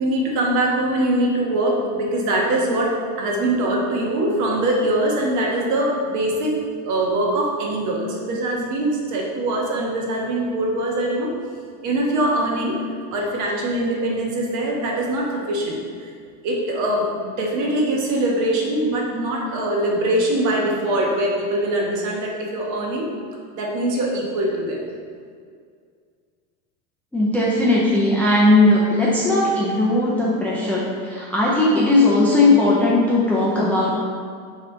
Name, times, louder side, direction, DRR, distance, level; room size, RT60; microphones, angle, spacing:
voice 1, 0.0-6.6 6.8-11.3 11.8-12.8 13.1-16.1 16.4-23.1 23.5-24.8, right 1 dB, 45° right, -1 dB, 1.2 m, -22 dB
voice 2, 27.1-33.9, left 2 dB, 5° left, -6 dB, 0.5 m, -18 dB
6.5 x 3.3 x 4.4 m, 2.1 s
supercardioid pair, 140°, 42 cm